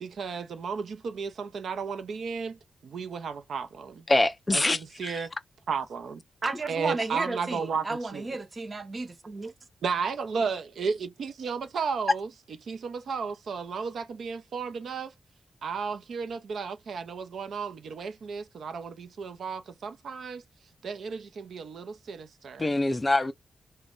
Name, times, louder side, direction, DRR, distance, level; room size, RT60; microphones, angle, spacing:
voice 1, 0.0-2.6 2.8-4.0 4.5-5.3 5.7-6.2 6.7-8.2 9.8-12.3 12.6-15.1 15.6-20.4 20.8-22.7, right 5 dB, 75° right, 0.6 m, -33 dB
voice 2, 4.1-5.2 22.6-23.3, left 2 dB, 20° left, 0.3 m, -25 dB
voice 3, 6.4-9.5, right 3 dB, 30° right, 0.7 m, -33 dB
3.1 x 2.2 x 3.6 m
wide cardioid pair, 120°, 0 cm